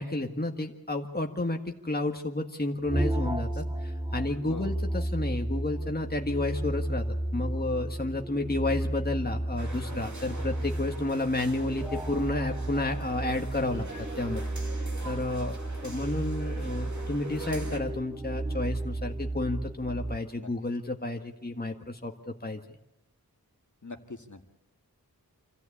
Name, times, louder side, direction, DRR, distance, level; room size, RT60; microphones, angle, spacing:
voice 1, 0.0-7.0 7.3-13.8 14.1-14.4 15.0-15.6 15.8-22.6, left 2 dB, 25° left, 3 dB, 1.8 m, -31 dB
sound 1, 2.8-20.2, right 1 dB, 15° right, 3.9 m, -33 dB
voice 2, 4.3-4.7 20.4-20.5 23.8-24.5, left 3 dB, 50° left, 4 dB, 2.1 m, -43 dB
sound 2, 9.6-17.8, right 2 dB, 50° right, 2.9 m, -44 dB
27.0 x 14.5 x 8.6 m, 0.96 s
wide cardioid pair, 45°, 37 cm